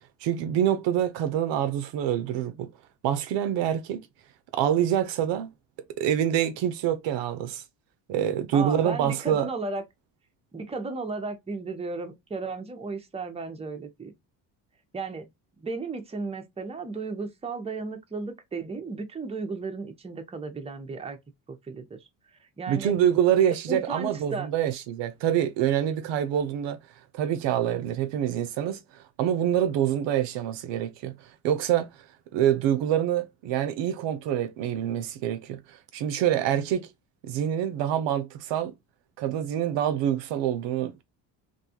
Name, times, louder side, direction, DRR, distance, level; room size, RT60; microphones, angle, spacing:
voice 1, 0.2-2.7 3.0-4.0 4.5-5.5 6.0-7.6 8.1-9.5 22.7-26.8 27.1-28.8 29.2-31.2 31.4-31.9 32.3-36.9 37.2-38.7 39.2-41.0, right 10 dB, 70° right, 0.6 m, -26 dB
voice 2, 8.5-9.8 10.5-14.1 14.9-15.3 15.6-21.2 21.5-22.9 23.7-24.5, right 3 dB, 15° right, 0.7 m, -34 dB
2.7 x 2.3 x 2.7 m
supercardioid pair, 70°, 46 cm